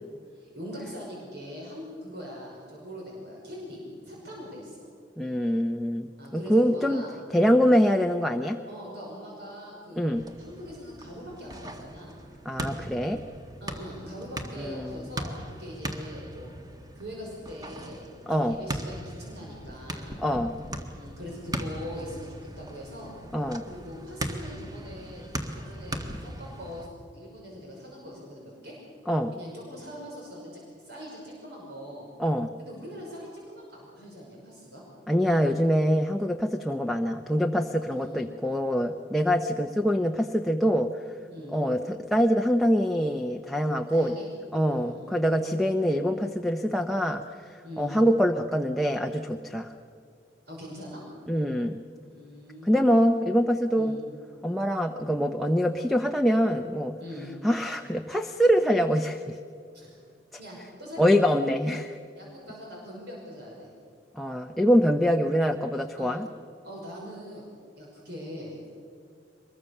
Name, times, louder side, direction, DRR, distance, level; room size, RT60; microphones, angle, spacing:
voice 1, 0.3-4.8 6.2-7.1 8.7-10.1 10.4-12.1 13.6-16.5 17.0-18.2 18.5-20.3 21.0-22.3 22.6-23.1 23.6-25.3 25.5-26.9 27.1-28.8 29.3-32.1 32.6-34.8 37.8-38.2 41.3-41.6 43.9-44.3 44.7-45.3 47.6-48.0 50.5-51.0 52.0-53.0 53.8-54.0 57.0-57.3 59.7-60.0 60.4-61.1 62.2-63.7 66.0-66.1 66.6-67.5 67.8-68.6, equal, 65° right, -3 dB, 5.7 m, -42 dB
voice 2, 5.2-7.0 7.3-8.6 10.0-10.2 12.4-13.2 14.6-15.0 18.3-18.6 20.2-20.5 23.3-23.6 29.1-29.3 32.2-32.5 35.1-40.9 41.5-44.1 44.5-49.7 51.3-51.8 52.6-54.0 54.4-57.0 57.4-59.4 61.0-62.0 64.1-66.3, equal, ahead, 3 dB, 0.7 m, -24 dB
sound 1, 10.1-26.9, right 1 dB, 20° right, 1.7 m, -39 dB
24.0 x 22.0 x 6.7 m, 2.3 s
head